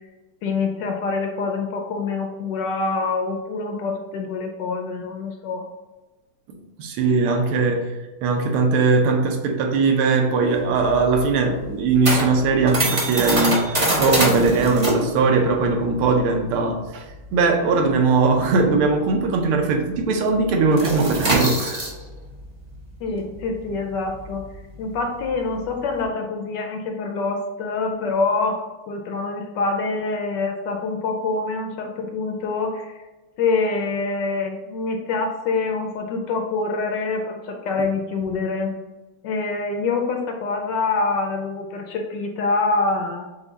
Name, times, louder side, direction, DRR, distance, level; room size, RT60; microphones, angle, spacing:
voice 1, 0.4-5.7 23.0-24.5 24.8-28.6 28.9-33.0 33.4-38.8 39.2-43.2, left 3 dB, 75° left, 3 dB, 1.0 m, -25 dB
voice 2, 6.5-13.6 14.0-17.0 17.3-21.9, right 4 dB, 80° right, 3 dB, 1.6 m, -20 dB
sound 1, 10.5-19.5 19.7-20.0 20.3-26.0, right 1 dB, 60° right, 0.3 m, -25 dB
5.8 x 2.2 x 3.9 m, 1.1 s
omnidirectional pair, 2.3 m